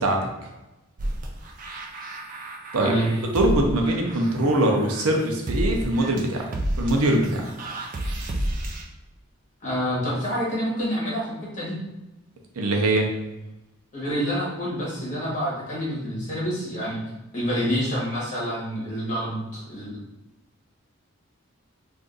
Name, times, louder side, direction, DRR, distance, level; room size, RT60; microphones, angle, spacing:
sound 1, 1.0-8.8, right 1 dB, 40° right, 0.3 m, -31 dB
voice 1, 3.3-6.4 6.8-7.5 12.6-13.1, right 1 dB, 90° right, 2 dB, 0.6 m, -22 dB
voice 2, 9.6-11.8 13.9-17.0 17.3-20.0, equal, 35° left, -6 dB, 1.1 m, -27 dB
2.5 x 2.5 x 3.8 m, 0.99 s
head